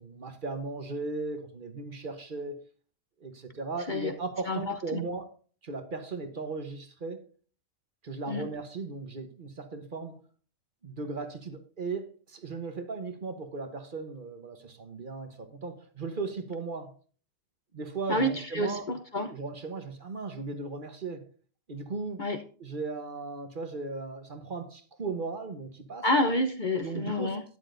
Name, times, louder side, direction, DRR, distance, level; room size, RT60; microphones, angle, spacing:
voice 1, 0.0-2.6 3.2-5.3 5.6-7.2 8.0-10.2 10.8-16.9 17.7-18.9 19.3-21.3 21.7-22.2 22.6-26.1 26.8-27.4, right 3 dB, 40° right, 1.1 m, -37 dB
voice 2, 4.5-5.0 8.3-8.5 18.1-19.3 22.2-22.4 26.0-27.4, left 1 dB, 45° left, 0.7 m, -28 dB
12.5 x 9.8 x 2.6 m
omnidirectional pair, 1.5 m